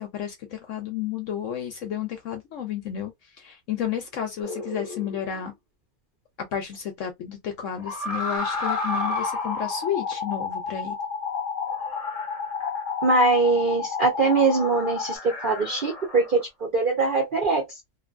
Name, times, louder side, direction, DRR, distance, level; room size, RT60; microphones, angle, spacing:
voice 1, 0.0-3.1 3.4-5.5 6.5-11.0, left 9 dB, 65° left, 0.8 m, -31 dB
sound 1, 4.4-5.4 7.8-9.9 11.7-13.0 14.1-16.4, left 1 dB, 40° left, 0.5 m, -34 dB
sound 2, 8.4-15.2, left 6 dB, 85° left, 1.2 m, -31 dB
voice 2, 13.0-17.7, right 3 dB, 55° right, 0.5 m, -22 dB
2.7 x 2.5 x 2.5 m
omnidirectional pair, 1.7 m